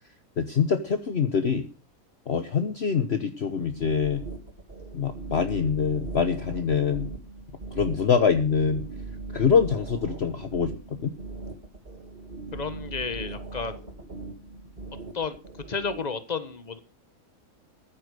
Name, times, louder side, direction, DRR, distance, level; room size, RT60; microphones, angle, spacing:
voice 1, 0.4-1.7 2.3-4.2 4.9-7.1 7.7-8.8 9.3-11.1, left 6 dB, 50° left, 8 dB, 1.2 m, -24 dB
sound 1, 3.7-16.0, right 3 dB, 30° right, 3.1 m, -39 dB
voice 2, 12.5-13.9 15.1-15.3 15.7-16.8, left 5 dB, 30° left, 11 dB, 1.5 m, -32 dB
15.0 x 8.7 x 6.4 m, 0.36 s
omnidirectional pair, 1.5 m